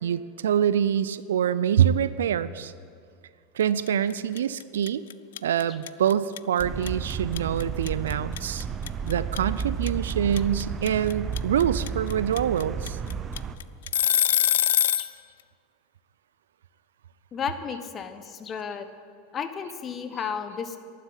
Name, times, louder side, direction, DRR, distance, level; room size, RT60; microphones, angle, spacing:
voice 1, 0.0-2.7 3.6-5.0 5.4-8.7 9.0-13.0, right 9 dB, 75° right, 16 dB, 0.5 m, -25 dB
sound 1, 3.9-4.1 4.4-15.1, left 11 dB, 70° left, 0.3 m, -24 dB
sound 2, 6.6-13.6, right 6 dB, 30° right, 0.9 m, -32 dB
voice 2, 17.3-18.9 19.3-20.8, left 6 dB, 35° left, 9 dB, 1.2 m, -33 dB
11.5 x 9.5 x 9.9 m, 2.2 s
hypercardioid pair, 85°, 0 cm